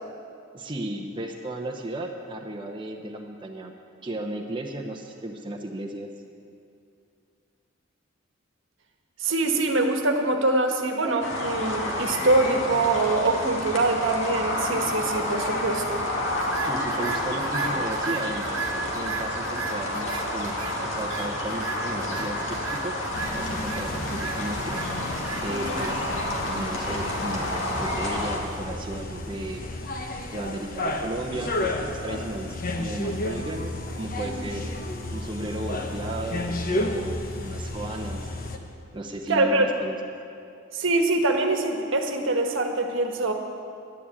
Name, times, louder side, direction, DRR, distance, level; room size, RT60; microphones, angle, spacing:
voice 1, 0.5-3.7 4.0-6.1 16.7-18.5 18.9-23.0 23.3-26.0 26.4-29.7 30.0-34.7 35.1-38.4 38.9-40.0, right 1 dB, 25° right, 1 dB, 0.8 m, -35 dB
voice 2, 9.2-16.0 25.5-25.8 39.3-39.7 40.7-43.3, right 2 dB, 70° right, 4 dB, 1.3 m, -24 dB
sound 1, 11.2-28.4, left 1 dB, 70° left, 2.2 m, -30 dB
sound 2, 16.3-30.6, right 5 dB, 90° right, 1.0 m, -37 dB
sound 3, 23.1-38.6, left 1 dB, 45° left, 1.0 m, -32 dB
11.0 x 10.0 x 8.6 m, 2.6 s
head